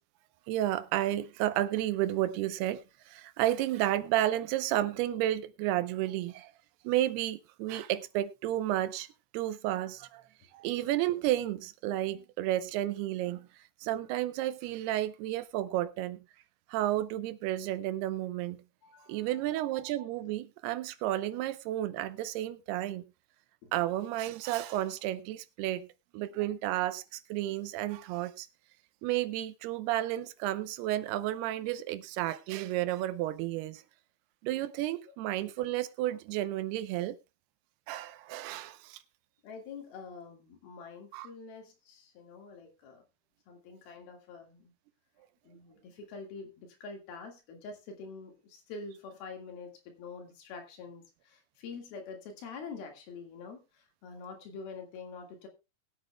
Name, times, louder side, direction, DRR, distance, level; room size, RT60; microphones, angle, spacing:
voice 1, 0.5-6.5 6.8-9.1 9.3-10.2 10.5-16.2 16.7-18.6 19.1-23.0 23.7-25.9 26.1-28.5 29.0-33.8 34.4-37.2 37.9-39.0 41.1-41.3, right 14 dB, 80° right, 2.7 m, -32 dB
voice 2, 18.8-19.4 23.6-23.7 39.4-43.1 43.5-44.7 45.4-55.5, left 4 dB, 70° left, 3.7 m, -46 dB
21.5 x 8.4 x 2.2 m
omnidirectional pair, 4.6 m